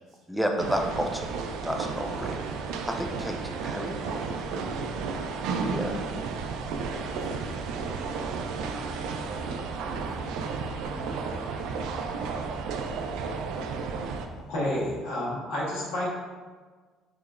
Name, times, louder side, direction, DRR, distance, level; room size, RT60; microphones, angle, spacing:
voice 1, 0.3-2.5 2.9-4.4 5.6-6.0, equal, ahead, 2 dB, 0.5 m, -31 dB
sound 1, 0.6-14.3, right 5 dB, 80° right, 0.3 m, -33 dB
voice 2, 5.3-5.9 6.5-7.7 8.6-11.9, right 1 dB, 50° right, -6 dB, 1.4 m, -47 dB
sound 2, 6.7-15.0, right 1 dB, 60° left, 0.8 m, -46 dB
voice 3, 14.5-16.1, left 1 dB, 85° left, -6 dB, 1.3 m, -30 dB
4.7 x 3.0 x 2.5 m, 1.5 s
cardioid pair, 110°, 0 cm